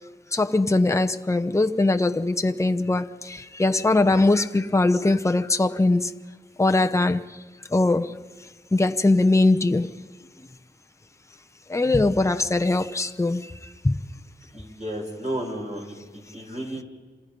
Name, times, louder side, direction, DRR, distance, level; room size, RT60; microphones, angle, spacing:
voice 1, 0.3-3.1 3.6-6.1 6.6-7.2 7.7-8.1 8.7-9.9 11.7-13.4 13.8-14.0, left 2 dB, 15° left, 0.9 m, -21 dB
voice 2, 14.5-16.8, right 1 dB, 35° right, 6.7 m, -33 dB
28.0 x 27.0 x 5.3 m
wide cardioid pair, 85°, 19 cm